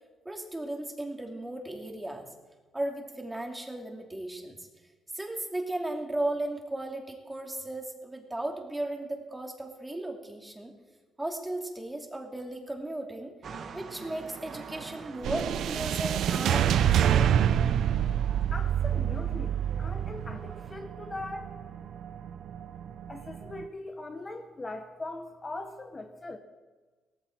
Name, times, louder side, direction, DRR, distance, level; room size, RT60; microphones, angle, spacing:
voice 1, 0.2-2.3 2.7-4.7 5.1-10.7 11.2-13.3 13.7-17.3, right 1 dB, 10° right, 2 dB, 2.8 m, -35 dB
sound 1, 13.4-20.7, right 5 dB, 55° right, 1.7 m, -46 dB
sound 2, 15.2-23.6, right 9 dB, 75° right, 0.7 m, -27 dB
voice 2, 18.5-21.6 23.1-26.4, left 2 dB, 25° left, 5 dB, 1.3 m, -40 dB
17.5 x 14.5 x 4.7 m, 1.3 s
cardioid pair, 90°, 0 cm